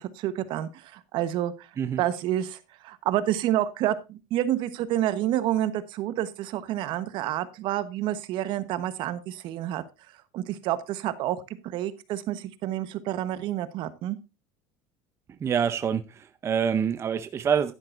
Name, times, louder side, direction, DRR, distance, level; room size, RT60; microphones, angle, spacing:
voice 1, 0.0-1.7 2.0-9.8 10.3-14.2, right 12 dB, 60° right, 1.1 m, -29 dB
voice 2, 15.4-17.7, right 7 dB, 30° right, 0.6 m, -26 dB
11.0 x 10.5 x 2.5 m
supercardioid pair, 115°, 9 cm